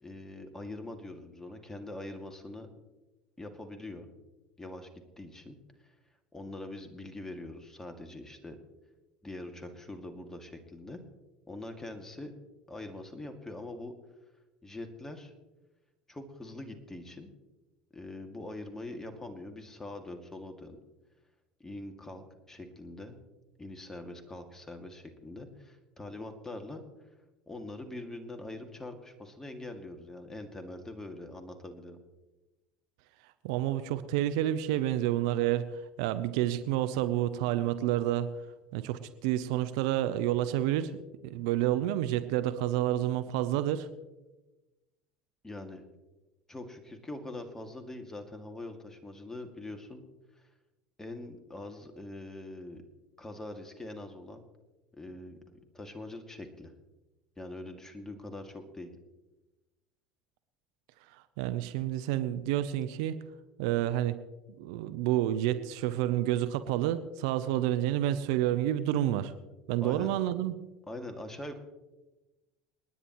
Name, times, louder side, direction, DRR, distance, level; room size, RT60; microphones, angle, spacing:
voice 1, 0.0-2.7 3.4-4.1 4.6-4.9 5.2-5.5 5.8-5.9 6.3-8.6 9.2-11.0 11.5-12.3 12.7-13.9 14.6-15.3 16.1-17.3 17.9-20.8 21.6-23.2 23.6-26.8 27.5-32.0 45.4-45.8 46.5-50.0 50.4-50.5 51.0-52.8 53.2-54.4 55.0-56.7 57.4-58.9 69.8-70.1 70.9-71.6, left 2 dB, 15° left, 6 dB, 2.2 m, -43 dB
voice 2, 33.4-38.3 38.7-41.0 41.2-43.9 61.4-63.2 63.6-64.2 64.6-69.3 69.7-70.5, right 13 dB, 70° right, 13 dB, 0.8 m, -29 dB
28.5 x 9.9 x 3.1 m, 1.1 s
hypercardioid pair, 75°, 3 cm